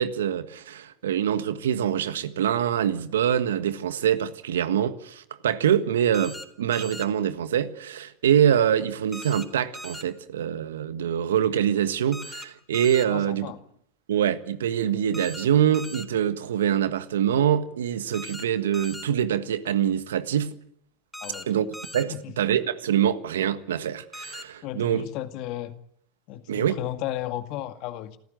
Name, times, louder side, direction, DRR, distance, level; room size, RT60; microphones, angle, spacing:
voice 1, 0.0-13.5 14.1-20.5 21.5-21.7 21.9-25.0 26.5-26.8, right 9 dB, 80° right, 1.5 m, -24 dB
sound 1, 6.1-6.5 6.7-7.1 9.1-9.5 9.7-10.0 12.1-12.5 12.7-13.1 15.1-15.5 15.7-16.1 18.1-18.4 18.7-19.1 21.1-21.4 21.7-22.0 24.1-24.4, left 1 dB, 5° left, 3.7 m, -39 dB
voice 2, 13.1-13.6 21.2-21.5 22.1-22.3 24.6-25.7 26.3-28.2, left 13 dB, 55° left, 2.1 m, -34 dB
27.0 x 14.0 x 9.3 m
hypercardioid pair, 100°, 0 cm